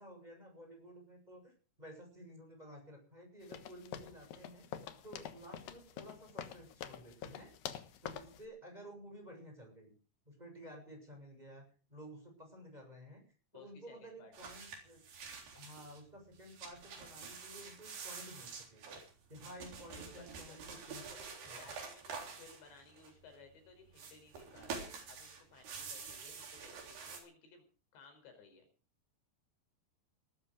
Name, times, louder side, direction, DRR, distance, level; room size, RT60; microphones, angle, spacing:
voice 1, 0.0-7.5 8.0-9.9 10.2-13.2 13.5-15.0 15.5-18.9 19.3-21.2 21.5-21.6, equal, 10° right, 3 dB, 6.9 m, -53 dB
sound 1, 3.5-8.4, left 9 dB, 65° left, 2.7 m, -47 dB
voice 2, 13.5-14.3 19.9-20.8 21.4-27.6 27.9-28.7, left 5 dB, 90° left, 6 dB, 6.9 m, -59 dB
sound 2, 14.3-16.0 16.4-23.3 23.9-27.2, right 5 dB, 65° right, 5.6 m, -48 dB
19.0 x 13.0 x 5.1 m, 0.38 s
omnidirectional pair, 4.9 m